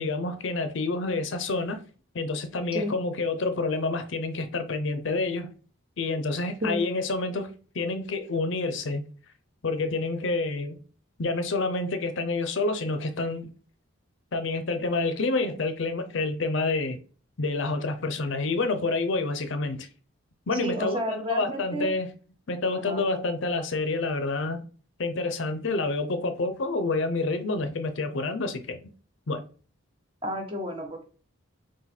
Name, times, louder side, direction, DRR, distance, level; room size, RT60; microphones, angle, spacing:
voice 1, 0.0-1.8 2.1-5.5 6.0-9.0 9.6-10.8 11.2-13.5 14.3-17.0 17.4-19.9 20.5-22.1 22.5-24.6 25.0-28.9 29.3-29.4, left 3 dB, 60° left, 0.6 m, -28 dB
voice 2, 20.5-21.9 22.7-23.0 30.2-31.0, equal, 25° right, 0.9 m, -31 dB
4.0 x 2.6 x 4.2 m
head